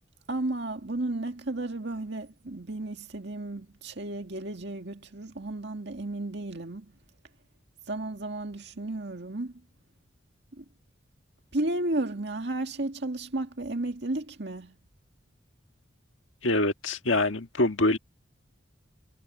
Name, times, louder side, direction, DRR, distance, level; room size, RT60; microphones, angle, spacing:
voice 1, 0.3-6.9 7.9-9.5 10.6-10.7 11.5-14.8, right 2 dB, 60° right, 2.0 m, -33 dB
voice 2, 16.4-18.0, left 2 dB, 80° left, 1.6 m, -25 dB
head